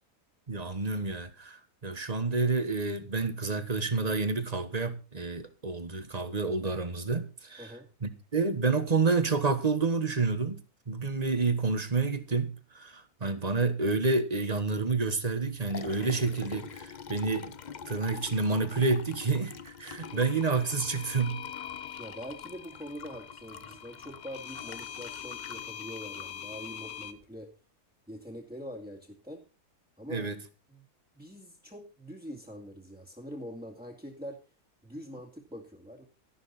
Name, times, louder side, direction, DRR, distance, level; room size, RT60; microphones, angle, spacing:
voice 1, 0.5-7.7 8.0-10.6 10.9-17.5 17.8-21.4 30.1-30.4, right 4 dB, 25° right, 1.4 m, -29 dB
Liquid, 15.3-27.2, left 7 dB, 50° left, 0.5 m, -46 dB
sound 1, 20.0-27.1, left 9 dB, 75° left, 1.4 m, -43 dB
voice 2, 22.0-27.5 28.1-29.4 30.0-30.3 30.7-30.8 31.1-34.4 34.8-36.0, equal, 5° right, 2.2 m, -44 dB
12.5 x 11.5 x 4.2 m
omnidirectional pair, 1.6 m